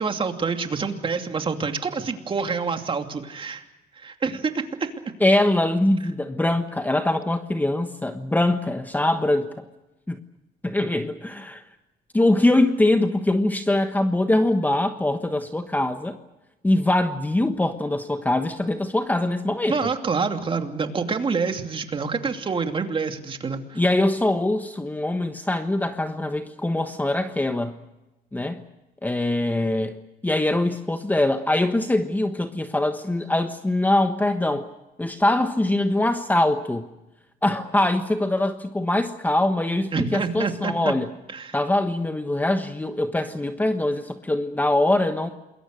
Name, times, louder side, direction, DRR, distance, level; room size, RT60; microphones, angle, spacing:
voice 1, 0.0-3.7 4.0-4.9 19.7-23.8 39.9-40.9 41.3-41.5, right 5 dB, 30° right, 5 dB, 2.7 m, -27 dB
voice 2, 5.2-9.5 10.1-10.2 10.6-11.6 12.1-16.2 16.6-19.8 23.7-27.8 28.3-28.6 29.0-29.9 30.2-34.7 35.0-36.9 37.4-41.1 41.5-45.3, left 1 dB, 10° left, 8 dB, 1.3 m, -23 dB
27.5 x 22.0 x 6.6 m, 0.99 s
cardioid pair, 110°, 17 cm